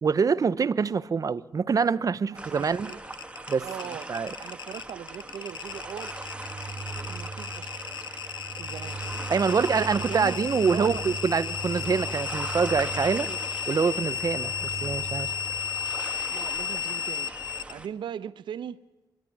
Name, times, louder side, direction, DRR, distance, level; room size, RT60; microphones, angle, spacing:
voice 1, 0.0-2.9 3.5-3.7 4.1-4.3 9.3-13.3 13.7-15.3, right 5 dB, 50° right, 0.7 m, -25 dB
sound 1, 2.3-17.9, right 2 dB, 15° right, 1.5 m, -41 dB
voice 2, 2.3-3.0 3.6-4.1 4.4-6.2 6.4-6.7 7.0-7.7 8.6-9.0 9.8-10.4 10.7-11.1 13.2-13.4 16.3-17.3 17.7-18.8, right 9 dB, 90° right, 0.8 m, -39 dB
sound 2, 2.8-17.7, left 7 dB, 70° left, 0.8 m, -34 dB
sound 3, 5.6-16.3, right 4 dB, 30° right, 2.3 m, -40 dB
26.5 x 12.0 x 9.5 m
cardioid pair, 70°, 8 cm